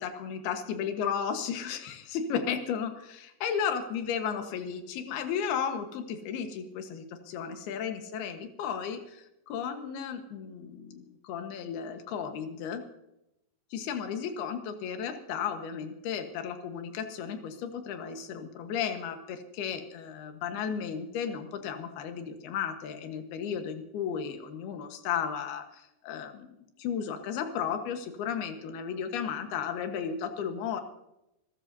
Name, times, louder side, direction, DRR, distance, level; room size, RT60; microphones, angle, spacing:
voice 1, 0.0-12.8 13.7-30.8, left 7 dB, 65° left, 6 dB, 2.9 m, -34 dB
27.0 x 14.0 x 2.7 m, 0.89 s
omnidirectional pair, 5.6 m